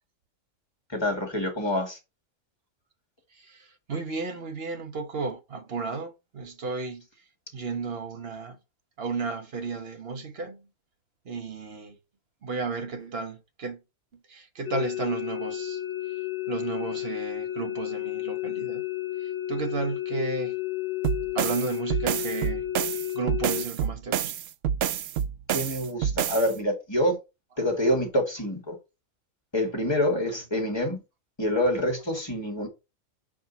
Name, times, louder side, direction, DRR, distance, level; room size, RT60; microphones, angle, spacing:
voice 1, 0.9-2.0 25.5-27.2 27.6-28.8 29.5-31.0 31.4-32.7, left 1 dB, 20° left, 2.2 m, -26 dB
voice 2, 3.3-7.0 7.5-8.6 9.0-10.7 11.2-12.0 12.4-13.8 14.3-15.8 16.5-18.8 19.2-20.6 21.3-22.7 23.1-24.3 30.1-30.2, right 4 dB, 50° right, 1.3 m, -33 dB
sound 1, 14.7-23.7, left 14 dB, 70° left, 0.5 m, -32 dB
sound 2, 21.0-26.5, right 9 dB, 65° right, 0.6 m, -28 dB
5.4 x 5.0 x 4.0 m
omnidirectional pair, 1.4 m